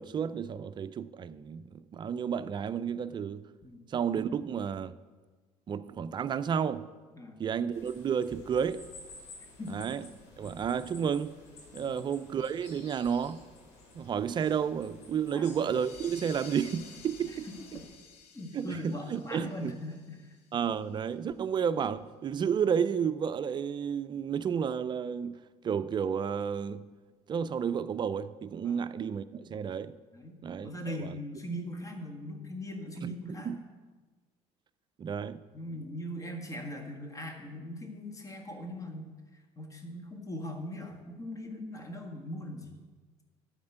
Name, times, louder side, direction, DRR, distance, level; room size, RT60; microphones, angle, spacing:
voice 1, 0.0-3.5 3.9-5.0 5.7-6.9 7.4-8.8 9.7-10.1 10.4-11.3 11.7-13.5 13.9-17.5 18.5-19.7 20.5-26.9 27.3-30.0 30.4-31.2 33.0-33.6 35.0-35.4, right 7 dB, 35° right, 0.4 m, -32 dB
sound 1, 7.7-17.9, left 2 dB, 85° left, 2.9 m, -53 dB
sound 2, 15.5-20.8, left 6 dB, 65° left, 1.3 m, -52 dB
voice 2, 18.3-20.4 28.6-28.8 30.1-33.6 35.5-42.7, equal, 25° left, 1.7 m, -40 dB
12.0 x 4.3 x 7.9 m
supercardioid pair, 100°, 13 cm